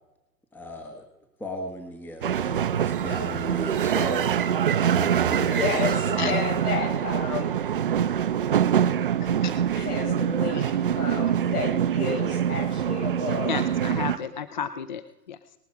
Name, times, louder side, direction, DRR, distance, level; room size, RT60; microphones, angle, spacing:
voice 1, 0.5-1.0 1.4-4.2 5.0-5.5 5.7-6.4, equal, 5° left, 4 dB, 1.3 m, -35 dB
sound 1, 2.2-14.2, right 9 dB, 35° right, 0.5 m, -24 dB
voice 2, 5.3-7.6 9.7-13.6, left 4 dB, 65° left, 1 dB, 7.1 m, -31 dB
voice 3, 13.5-15.0 15.3-15.4, left 7 dB, 30° left, 13 dB, 0.4 m, -32 dB
19.5 x 12.0 x 4.8 m, 0.94 s
figure-of-eight pair, 120°, 49 cm